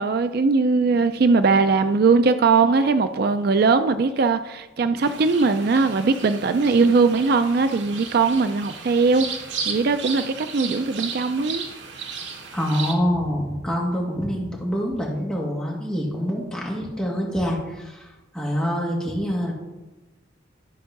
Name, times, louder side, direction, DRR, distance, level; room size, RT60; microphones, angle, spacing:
voice 1, 0.0-9.3 9.7-11.6, right 4 dB, 55° right, 0.4 m, -20 dB
sound 1, 5.0-12.9, right 5 dB, 80° right, 1.3 m, -34 dB
voice 2, 12.5-19.5, equal, 5° left, 2.1 m, -26 dB
12.0 x 4.6 x 5.9 m
head